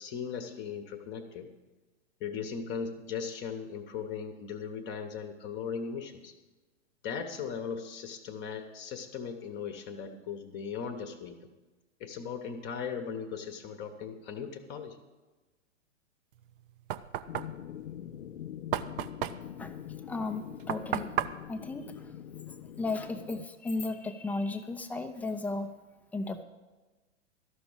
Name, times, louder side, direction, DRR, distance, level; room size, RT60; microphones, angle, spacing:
voice 1, 0.0-1.5 2.2-6.3 7.0-11.5 12.0-15.0, left 6 dB, 30° left, 6 dB, 1.0 m, -38 dB
Knock, 16.3-22.8, right 10 dB, 45° right, 0.6 m, -36 dB
sound 1, 17.3-23.5, left 11 dB, 70° left, 0.6 m, -44 dB
voice 2, 19.6-21.2 21.5-22.2 22.5-25.7 26.1-26.4, left 3 dB, 5° left, 6 dB, 0.5 m, -35 dB
13.0 x 6.1 x 8.7 m, 1.2 s
figure-of-eight pair, 110°, 37 cm